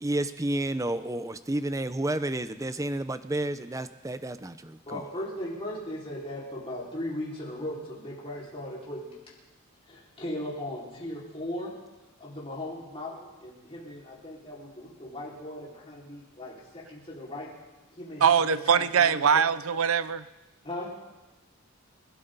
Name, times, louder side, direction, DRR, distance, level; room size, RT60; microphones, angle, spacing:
voice 1, 0.0-5.0, right 1 dB, 15° right, 12 dB, 0.6 m, -31 dB
voice 2, 4.9-9.2 9.9-11.7 12.2-17.5 18.0-19.4 20.6-20.9, left 1 dB, 25° left, -6 dB, 4.9 m, -38 dB
voice 3, 18.2-20.2, right 7 dB, 80° right, 14 dB, 0.6 m, -22 dB
28.5 x 12.5 x 4.0 m, 1.1 s
head